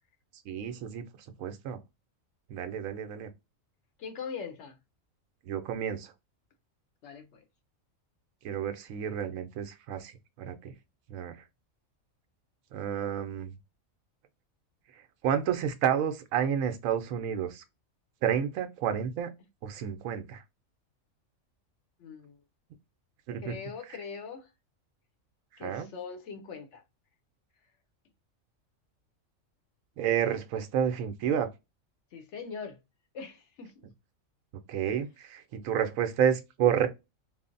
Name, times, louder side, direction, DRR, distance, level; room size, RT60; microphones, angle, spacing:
voice 1, 0.5-1.0 1.4-1.8 2.5-3.3 5.4-6.1 8.4-10.7 11.1-11.3 12.7-13.5 15.2-17.6 18.2-19.3 19.6-20.4 23.3-23.5 23.9-24.0 25.6-25.9 30.0-31.5 34.7-36.9, right 9 dB, 80° right, 1.0 m, -30 dB
voice 2, 4.0-4.8 7.0-7.4 22.0-22.4 23.4-24.5 25.6-26.8 32.1-32.8 33.1-33.9, left 6 dB, 65° left, 0.8 m, -41 dB
3.1 x 2.0 x 2.4 m
omnidirectional pair, 1.4 m